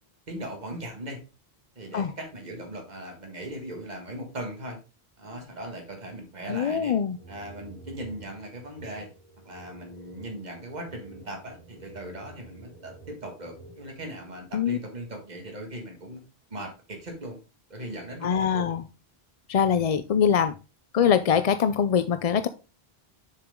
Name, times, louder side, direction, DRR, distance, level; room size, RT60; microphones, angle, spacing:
voice 1, 0.3-1.2 1.8-4.8 5.2-6.9 7.3-9.1 9.4-16.2 16.5-17.4 17.7-18.7, right 1 dB, 45° right, 2 dB, 1.9 m, -39 dB
voice 2, 6.5-7.2 14.5-14.8 18.2-18.8 19.5-20.5 20.9-22.5, left 7 dB, 50° left, 12 dB, 0.4 m, -23 dB
sound 1, 7.1-14.5, right 2 dB, 20° left, 3.2 m, -50 dB
7.0 x 6.6 x 3.6 m, 0.31 s
omnidirectional pair, 1.0 m